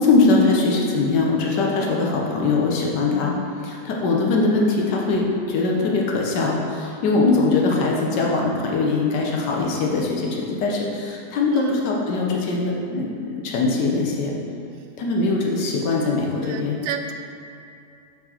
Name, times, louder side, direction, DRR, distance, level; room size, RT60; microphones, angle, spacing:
voice 1, 0.0-3.3 3.6-14.4 15.0-16.8, left 3 dB, 80° left, -1 dB, 1.5 m, -21 dB
voice 2, 11.5-11.8 16.4-17.1, right 7 dB, 75° right, 5 dB, 0.7 m, -30 dB
6.7 x 4.5 x 4.3 m, 2.6 s
omnidirectional pair, 1.8 m